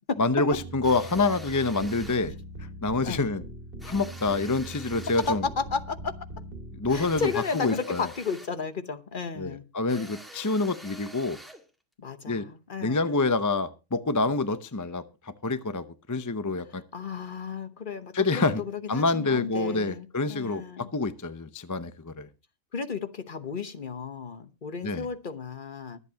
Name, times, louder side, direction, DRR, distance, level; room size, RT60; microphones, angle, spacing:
voice 1, 0.2-2.3 2.8-3.4 3.8-5.4 6.7-8.1 9.4-11.4 12.3-12.5 12.8-16.8 18.1-18.6 18.9-22.3 24.8-25.1, left 3 dB, 20° left, 12 dB, 0.5 m, -27 dB
sound 1, 0.5-7.4, right 2 dB, 45° right, 2.1 m, -41 dB
sound 2, 0.8-2.3 3.8-5.5 6.9-8.6 9.9-11.7, equal, ahead, 1.7 m, -47 dB
voice 2, 5.2-6.1 6.9-9.6 12.0-13.1 16.9-20.9 22.7-26.0, left 5 dB, 40° left, 11 dB, 1.1 m, -33 dB
23.5 x 8.3 x 2.9 m, 0.29 s
omnidirectional pair, 1.3 m